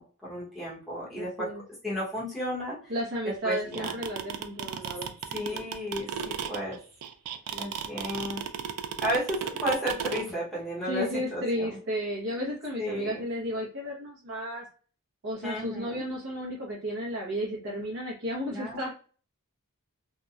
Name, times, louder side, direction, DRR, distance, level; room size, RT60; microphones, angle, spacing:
voice 1, 0.0-1.5 1.8-2.8 3.4-3.9 5.3-6.8 7.6-8.5 9.0-11.7 12.8-13.2 15.4-16.1 18.5-18.9, equal, ahead, -8 dB, 0.9 m, -33 dB
voice 2, 1.2-1.6 2.9-5.1 5.5-5.6 7.5-7.7 10.9-14.7 15.2-18.9, equal, 55° right, -4 dB, 0.7 m, -33 dB
sound 1, 3.5-10.2, right 8 dB, 85° right, 0.4 m, -33 dB
2.8 x 2.1 x 2.3 m, 0.40 s
head